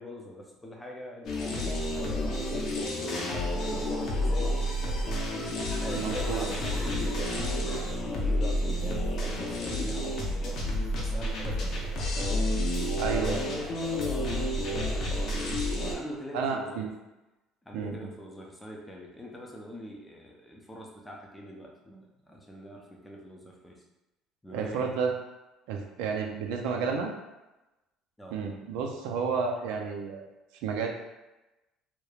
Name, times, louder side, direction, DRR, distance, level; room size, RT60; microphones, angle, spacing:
voice 1, 0.0-3.3 3.6-5.0 5.8-10.6 11.0-12.2 13.0-15.7 15.9-16.9 17.6-23.8 24.4-24.9 28.2-28.4, equal, 5° left, -2 dB, 0.5 m, -43 dB
sound 1, 1.2-15.9, left 1 dB, 50° left, 0.6 m, -30 dB
voice 2, 5.9-6.5 13.0-13.4 16.3-16.9 17.7-18.1 24.5-25.1 25.7-27.1 28.3-30.2 30.6-30.9, right 5 dB, 85° right, 2 dB, 0.4 m, -31 dB
3.0 x 2.1 x 2.3 m, 1.0 s
cardioid pair, 115°, 0 cm